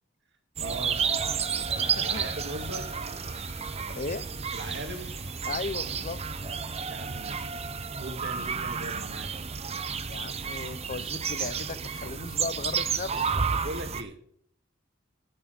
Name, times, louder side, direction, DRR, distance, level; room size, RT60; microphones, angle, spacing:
sound 1, 0.6-14.0, right 6 dB, 30° right, 0.7 m, -31 dB
voice 1, 0.6-1.0 2.0-2.9 4.5-5.1 6.9-7.5 8.0-9.3 13.5-14.2, right 2 dB, 60° right, 5 dB, 2.3 m, -39 dB
sound 2, 1.2-13.3, left 1 dB, 60° left, 1.8 m, -52 dB
voice 2, 2.0-2.4 3.9-4.2 5.4-6.2 10.1-13.4, left 4 dB, 40° left, 16 dB, 0.7 m, -36 dB
11.5 x 8.8 x 6.6 m, 0.62 s
head